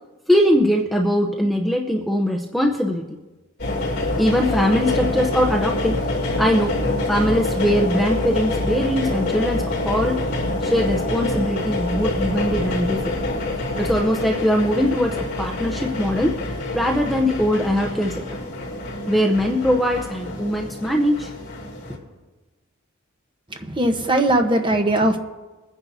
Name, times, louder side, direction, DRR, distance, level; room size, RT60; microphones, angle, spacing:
voice 1, 0.3-3.2 4.2-6.1 6.4-6.8 7.1-10.2 10.6-13.1 13.8-16.4 16.7-18.4 19.1-21.3, equal, ahead, 1 dB, 0.6 m, -21 dB
sound 1, 3.6-22.0, left 2 dB, 50° left, 3.2 m, -26 dB
voice 2, 23.5-25.2, right 1 dB, 20° right, 5 dB, 1.0 m, -19 dB
22.5 x 10.0 x 2.7 m, 1.2 s
head